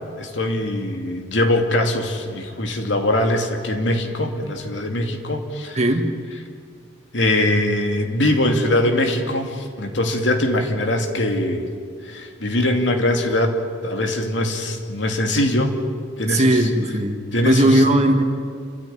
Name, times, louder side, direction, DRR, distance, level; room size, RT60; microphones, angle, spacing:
voice 1, 0.2-5.8 7.1-11.7 12.1-13.6 13.8-15.7 16.2-16.5 17.3-17.8, left 1 dB, 85° left, 3 dB, 2.6 m, -22 dB
voice 2, 5.7-6.1 16.3-17.2 17.4-18.2, right 1 dB, 40° right, 4 dB, 2.0 m, -17 dB
28.5 x 13.5 x 9.5 m, 2.2 s
head